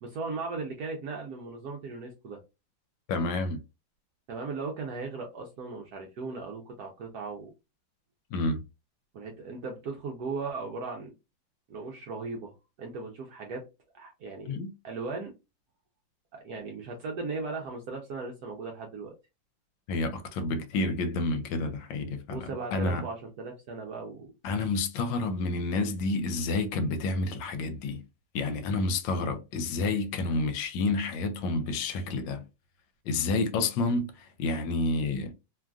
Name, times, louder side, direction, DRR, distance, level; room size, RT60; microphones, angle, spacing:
voice 1, 0.0-2.4 4.3-7.5 9.1-11.1 11.7-13.6 13.9-14.6 14.8-15.3 16.3-19.1 22.3-24.3, right 4 dB, 70° right, 0.9 m, -37 dB
voice 2, 3.1-3.6 8.3-8.6 14.5-14.7 19.9-23.0 24.4-28.0 28.3-32.4 33.0-35.3, left 3 dB, 80° left, 1.3 m, -29 dB
3.2 x 2.4 x 2.2 m
omnidirectional pair, 2.1 m